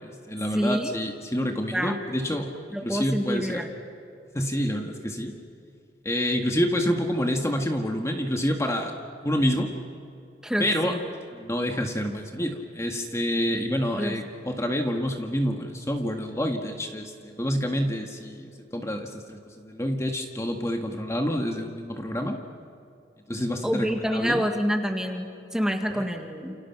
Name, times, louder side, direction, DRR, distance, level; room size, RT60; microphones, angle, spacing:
voice 1, 0.0-2.5 2.8-3.6 4.3-5.3 6.1-8.9 9.2-9.7 10.6-10.9 11.3-22.4 23.3-24.5 26.0-26.1, equal, 15° left, 3 dB, 1.7 m, -28 dB
voice 2, 0.5-1.0 1.7-2.0 2.7-3.7 10.4-11.0 14.0-14.2 23.6-26.6, equal, 5° right, 4 dB, 1.9 m, -27 dB
29.5 x 29.0 x 6.0 m, 2.6 s
head